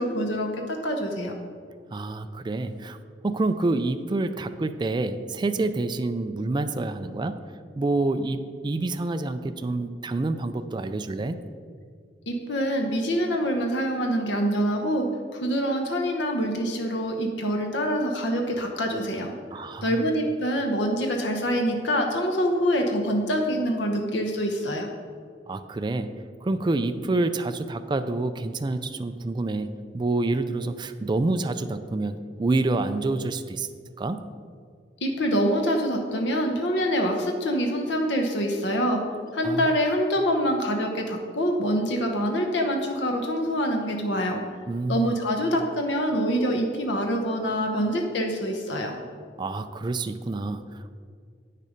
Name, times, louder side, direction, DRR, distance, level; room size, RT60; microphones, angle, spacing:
voice 1, 0.0-1.3 12.3-24.9 35.0-39.0 39.3-44.4 44.9-49.0, equal, 80° left, 3 dB, 0.9 m, -25 dB
voice 2, 1.9-3.0 3.2-7.4 7.8-11.4 19.5-20.0 25.5-26.1 26.4-33.7 34.0-34.2 39.4-39.7 44.7-45.1 49.4-51.0, right 2 dB, 25° right, 9 dB, 0.3 m, -27 dB
8.5 x 6.6 x 5.1 m, 2.1 s
head